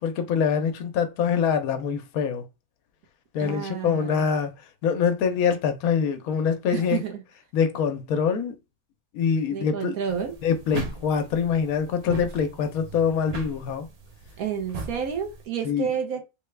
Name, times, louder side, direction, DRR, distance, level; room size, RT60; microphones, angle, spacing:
voice 1, 0.0-2.4 3.3-4.5 4.8-7.0 7.5-8.6 9.1-10.0 10.4-13.9 15.6-15.9, left 6 dB, 75° left, 1.1 m, -24 dB
voice 2, 3.4-4.3 6.7-7.2 9.5-10.3 14.4-16.2, right 7 dB, 75° right, 1.3 m, -30 dB
sound 1, 10.1-15.4, right 4 dB, 55° right, 0.4 m, -38 dB
3.5 x 2.2 x 3.2 m
omnidirectional pair, 1.6 m